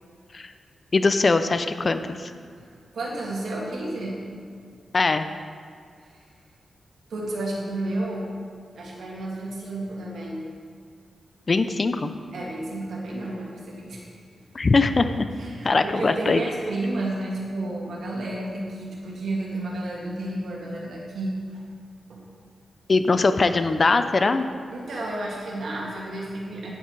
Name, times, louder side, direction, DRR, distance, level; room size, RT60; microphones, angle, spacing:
voice 1, 0.9-2.3 4.9-5.3 11.5-12.1 14.5-15.3 15.6-16.4 22.9-24.5, left 3 dB, 40° left, 9 dB, 0.5 m, -21 dB
voice 2, 2.9-4.2 7.1-8.3 8.7-10.5 12.3-14.0 15.4-21.6 22.1-22.2 24.7-26.7, right 2 dB, 80° right, -4 dB, 2.3 m, -31 dB
16.0 x 5.7 x 4.7 m, 2.2 s
cardioid pair, 90°, 0 cm